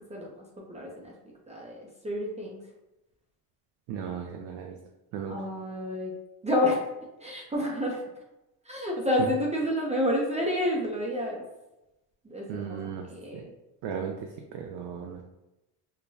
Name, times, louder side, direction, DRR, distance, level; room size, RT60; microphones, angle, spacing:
voice 1, 0.1-1.1 1.5-2.6 5.3-6.1 6.4-6.9 7.2-8.0 8.6-11.4 12.2-12.8 13.1-13.4, left 1 dB, 15° right, -2 dB, 0.6 m, -29 dB
voice 2, 3.9-4.8 5.1-5.4 12.5-13.1 13.3-13.5 13.8-15.2, right 7 dB, 75° right, 2 dB, 0.5 m, -36 dB
4.7 x 2.2 x 2.6 m, 0.97 s
cardioid pair, 95°, 41 cm